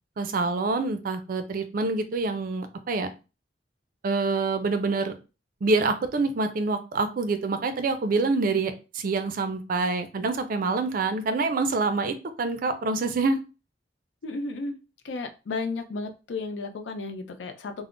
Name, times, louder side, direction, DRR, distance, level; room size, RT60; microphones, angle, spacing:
voice 1, 0.2-3.1 4.0-5.1 5.6-13.4, right 3 dB, 50° right, 9 dB, 0.4 m, -26 dB
voice 2, 14.2-14.8 15.0-17.7, left 3 dB, 85° left, 6 dB, 0.5 m, -33 dB
2.4 x 2.0 x 3.6 m, 0.30 s
head